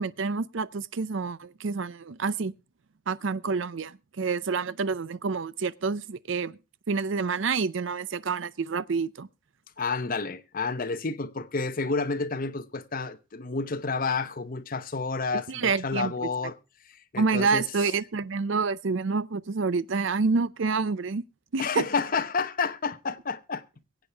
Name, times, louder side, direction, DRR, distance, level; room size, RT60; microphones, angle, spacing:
voice 1, 0.0-2.5 3.1-6.6 6.9-9.3 15.5-16.1 17.1-21.2 21.5-21.8, right 4 dB, 65° right, 0.6 m, -28 dB
voice 2, 9.8-16.6 16.8-17.7 21.6-23.6, left 4 dB, 45° left, 0.9 m, -30 dB
23.0 x 8.4 x 3.4 m
head